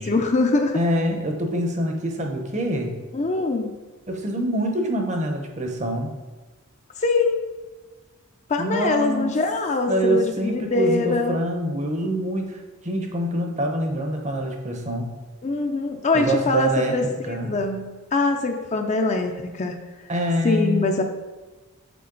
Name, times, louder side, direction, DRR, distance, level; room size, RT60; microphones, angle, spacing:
voice 1, 0.0-0.8 3.1-3.7 7.0-7.4 8.5-11.4 15.4-19.8 20.4-21.0, left 3 dB, 30° left, 4 dB, 0.5 m, -23 dB
voice 2, 0.7-2.9 4.1-6.1 8.6-9.3 9.9-12.6 12.8-15.1 16.1-17.6 20.1-20.8, right 1 dB, 35° right, 3 dB, 0.8 m, -25 dB
6.9 x 4.1 x 3.9 m, 1.2 s
head